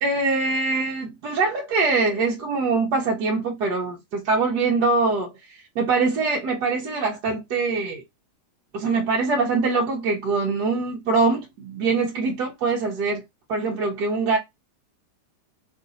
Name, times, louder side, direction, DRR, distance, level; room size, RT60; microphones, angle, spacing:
voice 1, 0.0-8.0 8.7-13.2 13.5-14.4, right 4 dB, 70° right, 1.3 m, -23 dB
3.1 x 2.6 x 3.7 m
omnidirectional pair, 1.9 m